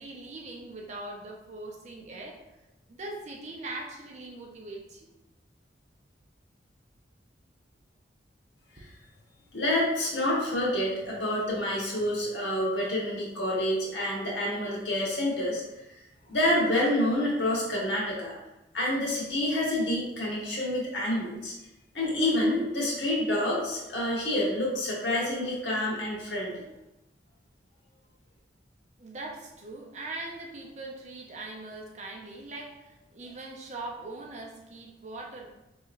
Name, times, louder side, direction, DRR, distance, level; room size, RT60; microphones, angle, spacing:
voice 1, 0.0-2.4 2.9-5.1 29.0-35.5, right 2 dB, 40° right, 0 dB, 0.6 m, -41 dB
voice 2, 9.5-15.6 16.3-18.4 18.7-21.5 21.9-26.6, left 1 dB, 90° left, -4 dB, 1.2 m, -28 dB
4.0 x 2.9 x 2.5 m, 0.94 s
head